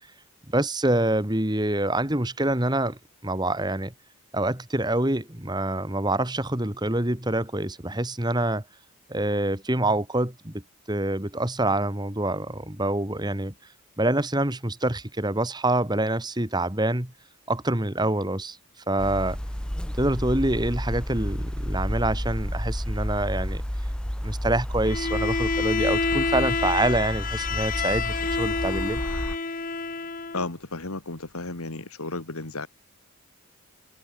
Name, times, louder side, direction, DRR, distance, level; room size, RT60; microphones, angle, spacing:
voice 1, 0.5-3.0 3.2-3.9 4.3-8.6 9.1-10.6 10.9-13.5 14.0-17.1 17.5-18.6 18.9-19.4 20.0-23.6 24.2-29.0, right 1 dB, 20° right, 2.0 m, -26 dB
sound 1, 19.0-29.4, equal, 5° left, 0.6 m, -31 dB
Bowed string instrument, 24.9-30.5, left 4 dB, 40° left, 1.7 m, -28 dB
voice 2, 30.3-32.7, left 2 dB, 80° left, 2.5 m, -33 dB
head